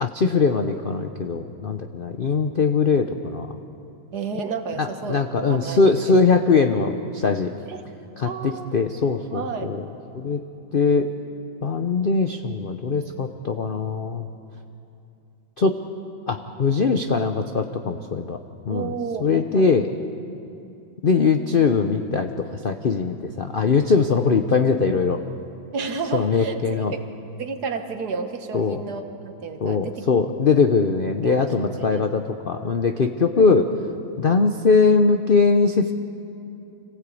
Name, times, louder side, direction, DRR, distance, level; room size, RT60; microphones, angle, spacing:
voice 1, 0.0-3.5 4.8-7.5 8.2-9.8 10.1-10.4 10.7-11.1 11.6-14.3 15.6-15.7 16.3-18.4 18.7-18.9 19.2-19.9 21.0-25.2 26.1-26.9 28.5-28.8 29.6-33.6 34.2-35.9, left 4 dB, 65° left, 6 dB, 0.5 m, -21 dB
voice 2, 4.1-6.2 7.7-7.9 8.2-8.7 9.3-9.7 18.7-19.7 25.7-27.0 27.4-30.0 31.2-32.1 33.4-33.7, right 5 dB, 60° right, 7 dB, 1.7 m, -31 dB
26.0 x 16.5 x 8.4 m, 2.7 s
omnidirectional pair, 2.1 m